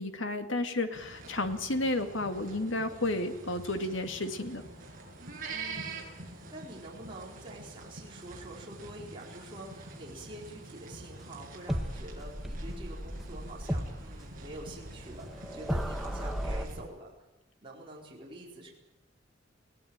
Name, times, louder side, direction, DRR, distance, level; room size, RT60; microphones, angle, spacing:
voice 1, 0.0-4.6, left 2 dB, 70° left, 7 dB, 2.3 m, -32 dB
sound 1, 0.9-16.8, right 3 dB, 45° right, 6.8 m, -46 dB
voice 2, 5.5-17.1 17.6-18.7, right 1 dB, 25° right, -4 dB, 4.6 m, -46 dB
sound 2, 11.7-16.7, equal, ahead, 1.4 m, -35 dB
21.5 x 18.0 x 8.9 m, 0.94 s
head